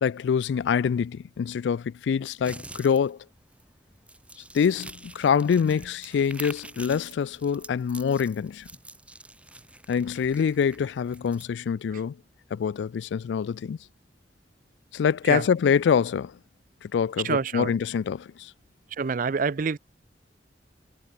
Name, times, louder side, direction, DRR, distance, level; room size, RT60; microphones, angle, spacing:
voice 1, 0.0-3.2 4.5-8.7 9.9-12.2 12.5-13.8 14.9-16.3 16.8-18.5, left 7 dB, 90° left, 0.3 m, -25 dB
sound 1, 2.4-11.5, right 2 dB, 5° right, 2.3 m, -46 dB
voice 2, 17.2-17.7 19.0-19.8, right 5 dB, 50° right, 0.5 m, -26 dB
head